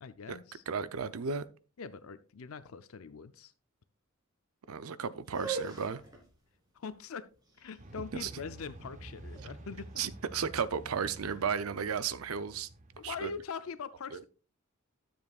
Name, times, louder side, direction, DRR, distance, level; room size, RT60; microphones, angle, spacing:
voice 1, 0.0-0.6 1.8-3.5 6.7-7.3 7.6-10.0 13.0-14.2, left 5 dB, 75° left, 0.5 m, -42 dB
voice 2, 0.7-1.4 4.7-6.0 8.1-8.3 10.0-12.7 13.0-13.3 14.1-14.2, right 6 dB, 80° right, 0.6 m, -34 dB
sound 1, 5.2-11.2, right 5 dB, 20° right, 2.7 m, -44 dB
sound 2, 7.8-13.4, right 1 dB, 35° right, 0.7 m, -50 dB
12.5 x 7.1 x 2.4 m
head